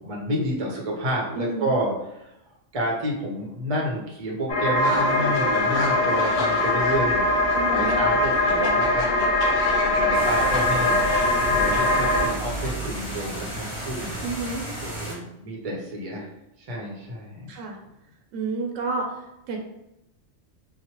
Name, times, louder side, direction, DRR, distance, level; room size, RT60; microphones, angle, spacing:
voice 1, 0.0-2.3 2.7-7.3 7.7-9.1 10.0-11.0 11.4-14.1 14.8-16.3 16.6-17.5, equal, 40° right, -2 dB, 0.5 m, -29 dB
voice 2, 1.4-1.7 7.5-8.0 14.2-14.7 17.5-17.8 18.3-19.6, right 3 dB, 80° right, 2 dB, 0.9 m, -30 dB
sound 1, 4.5-12.3, left 2 dB, 50° left, 0.6 m, -22 dB
sound 2, 4.7-12.7, left 1 dB, 85° left, 1.0 m, -33 dB
sound 3, 10.1-15.1, right 1 dB, 10° left, 1.1 m, -33 dB
2.9 x 2.1 x 2.8 m, 0.87 s
omnidirectional pair, 1.3 m